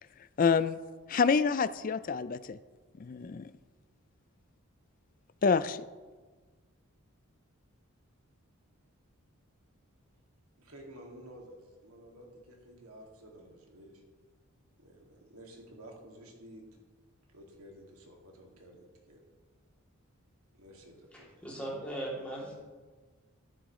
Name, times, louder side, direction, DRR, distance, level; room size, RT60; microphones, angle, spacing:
voice 1, 0.4-0.8 1.1-2.6 3.0-3.5 5.4-5.9, left 5 dB, 40° left, 15 dB, 0.3 m, -27 dB
voice 2, 10.6-14.0 14.8-16.6 17.3-19.2 20.5-21.3, right 1 dB, 85° right, 0 dB, 2.2 m, -52 dB
voice 3, 21.1-22.5, right 1 dB, 5° left, -6 dB, 2.7 m, -39 dB
13.0 x 10.5 x 3.1 m, 1.4 s
head